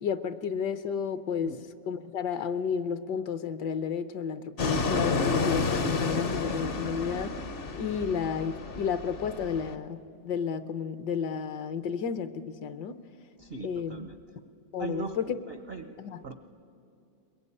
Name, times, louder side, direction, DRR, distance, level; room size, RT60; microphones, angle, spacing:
voice 1, 0.0-1.5 1.9-7.3 7.8-10.0 10.2-13.0 13.6-14.0 14.7-15.4 16.0-16.2, left 6 dB, 65° left, 11 dB, 1.3 m, -32 dB
Fixed-wing aircraft airplane, 4.6-9.7, left 3 dB, 45° left, 0.7 m, -30 dB
voice 2, 13.4-14.2 14.8-16.0 16.2-16.3, right 4 dB, 55° right, 8 dB, 0.6 m, -40 dB
22.0 x 22.0 x 9.8 m, 2.5 s
omnidirectional pair, 2.1 m